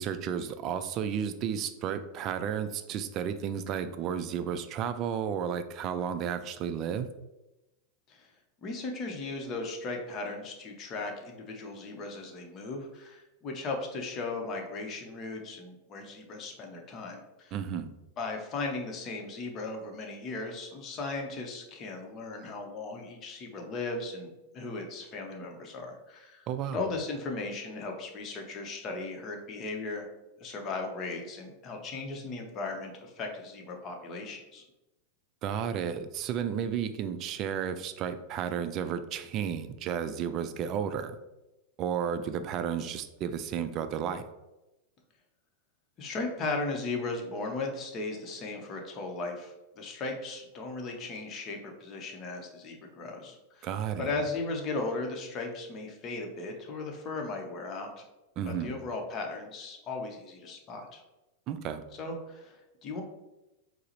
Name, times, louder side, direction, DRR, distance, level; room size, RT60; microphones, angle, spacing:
voice 1, 0.0-7.1 17.5-17.9 26.5-26.8 35.4-41.2 41.8-44.2 53.6-54.2 58.4-58.8 61.5-61.8, right 8 dB, 40° right, 11 dB, 0.3 m, -32 dB
voice 2, 8.6-17.6 18.2-30.1 30.4-34.6 46.0-53.7 54.0-58.0 58.5-61.0 62.0-63.0, left 3 dB, 35° left, 2 dB, 0.7 m, -37 dB
4.6 x 2.0 x 3.0 m, 0.98 s
hypercardioid pair, 100°, 0 cm